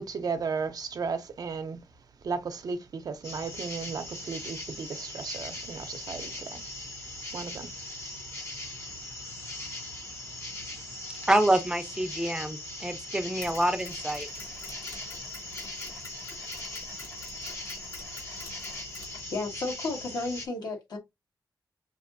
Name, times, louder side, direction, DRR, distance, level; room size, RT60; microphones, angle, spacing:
voice 1, 0.0-1.8 2.2-6.6 7.3-7.7, right 5 dB, 65° right, 0.7 m, -35 dB
sound 1, 3.2-20.5, left 1 dB, 40° left, 1.1 m, -40 dB
voice 2, 11.3-14.3, right 1 dB, 10° right, 0.7 m, -26 dB
Mechanisms, 13.4-19.7, left 3 dB, 90° left, 2.7 m, -47 dB
voice 3, 19.3-21.0, left 3 dB, 70° left, 1.6 m, -33 dB
5.8 x 2.7 x 2.6 m
wide cardioid pair, 105°, 7 cm